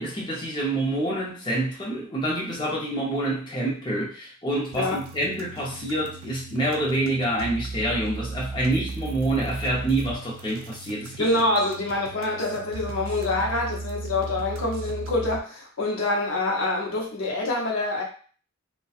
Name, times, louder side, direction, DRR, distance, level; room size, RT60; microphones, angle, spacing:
voice 1, 0.0-11.3, right 1 dB, 20° left, -5 dB, 0.6 m, -27 dB
sound 1, 4.7-15.4, right 3 dB, 70° right, 0.4 m, -37 dB
voice 2, 11.2-18.0, left 2 dB, 75° left, -1 dB, 0.7 m, -26 dB
2.7 x 2.2 x 2.4 m, 0.42 s
head